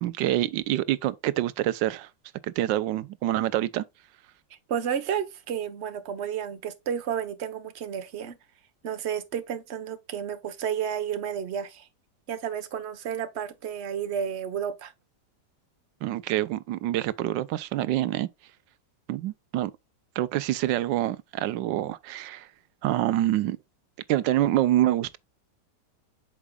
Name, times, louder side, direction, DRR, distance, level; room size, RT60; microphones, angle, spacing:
voice 1, 0.0-2.1 2.4-3.8 16.0-18.3 19.1-19.7 20.2-22.5 22.8-23.6 24.1-25.2, right 14 dB, 90° right, 1.3 m, -26 dB
voice 2, 4.7-8.4 8.8-11.9 12.3-14.9, right 8 dB, 45° right, 1.1 m, -31 dB
8.3 x 6.1 x 2.3 m
omnidirectional pair, 1.9 m